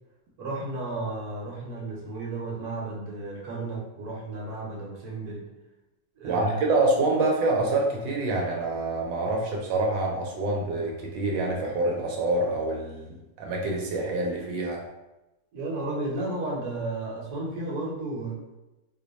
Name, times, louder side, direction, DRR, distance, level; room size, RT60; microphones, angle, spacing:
voice 1, 0.4-5.5 6.2-6.7 15.5-18.4, right 2 dB, 60° right, -3 dB, 1.3 m, -33 dB
voice 2, 6.2-14.8, right 2 dB, 85° right, -1 dB, 1.3 m, -26 dB
3.1 x 2.1 x 3.9 m, 0.99 s
omnidirectional pair, 2.0 m